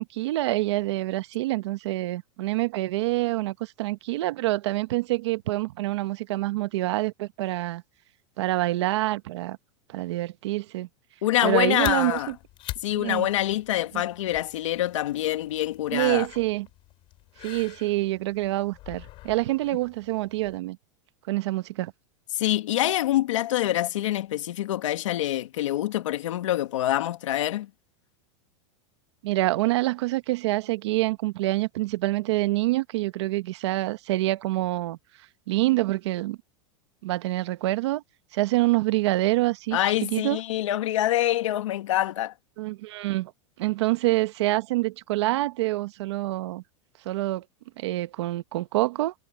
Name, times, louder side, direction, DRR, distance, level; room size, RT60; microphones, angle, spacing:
voice 1, 0.0-7.8 8.4-9.6 9.9-10.9 11.4-12.3 12.9-13.3 13.9-14.0 15.9-16.7 17.4-20.8 21.3-21.9 29.2-35.0 35.5-36.4 37.0-38.0 38.3-39.8 40.1-40.4 42.6-43.3 43.6-46.6 47.0-47.4 47.8-49.1, right 18 dB, 65° right, 1.3 m, -26 dB
voice 2, 11.2-12.3 12.8-16.3 22.3-27.7 39.7-42.3, left 14 dB, 85° left, 2.1 m, -25 dB
sound 1, 11.4-20.6, left 17 dB, 35° left, 7.5 m, -45 dB
supercardioid pair, 160°, 16 cm